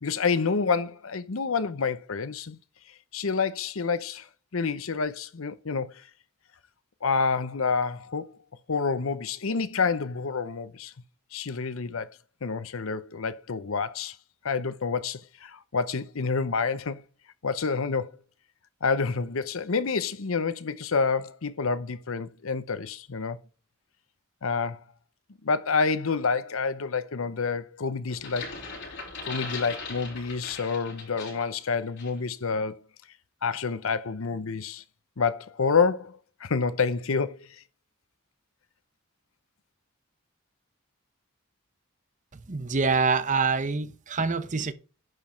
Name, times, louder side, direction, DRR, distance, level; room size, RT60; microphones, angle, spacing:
voice 1, 0.0-2.6 3.1-4.3 4.5-5.9 7.0-8.3 8.7-10.9 11.3-12.1 12.4-14.2 14.4-17.0 17.4-18.2 18.8-23.4 24.4-24.8 25.4-28.6 29.3-32.8 33.4-34.8 35.2-37.5, left 5 dB, 75° left, 0.8 m, -28 dB
sound 1, 28.1-31.6 32.0-32.2, left 4 dB, 55° left, 5.3 m, -39 dB
voice 2, 42.3-44.7, right 4 dB, 35° right, 0.8 m, -26 dB
11.0 x 5.0 x 4.5 m
head